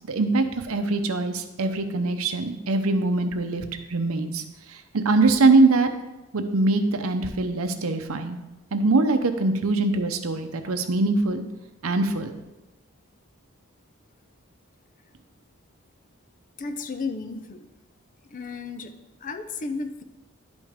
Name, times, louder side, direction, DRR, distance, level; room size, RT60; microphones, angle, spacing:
voice 1, 0.1-4.4 4.7-5.9 6.3-8.4 8.7-11.4 11.8-12.3, right 3 dB, 80° right, 7 dB, 0.7 m, -23 dB
voice 2, 16.6-17.6 18.3-18.9 19.2-20.0, left 4 dB, 40° left, 8 dB, 0.5 m, -33 dB
10.5 x 5.3 x 3.6 m, 1.0 s
head